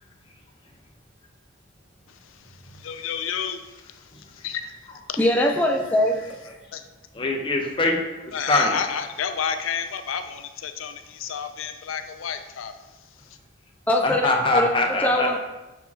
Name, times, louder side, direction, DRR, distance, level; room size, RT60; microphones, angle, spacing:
voice 1, 2.1-5.2 6.7-6.8 8.3-13.0 13.2-13.4, left 7 dB, 85° left, 8 dB, 0.5 m, -31 dB
voice 2, 5.2-6.6 13.9-15.4, left 1 dB, 10° left, 1 dB, 0.4 m, -23 dB
voice 3, 7.1-8.8 14.0-15.4, left 2 dB, 25° left, 1 dB, 0.8 m, -23 dB
6.9 x 5.8 x 2.8 m, 1.1 s
head